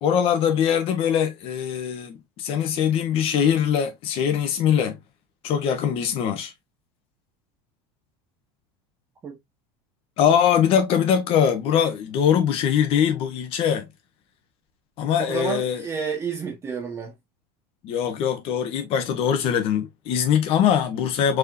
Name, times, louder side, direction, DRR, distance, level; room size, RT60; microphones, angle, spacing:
voice 1, 0.0-5.0 5.4-6.5 10.2-13.9 15.0-15.8 17.8-21.4, left 8 dB, 50° left, 1.2 m, -22 dB
voice 2, 15.2-17.1, right 6 dB, 20° right, 1.2 m, -30 dB
4.7 x 3.1 x 2.6 m
supercardioid pair, 135°, 13 cm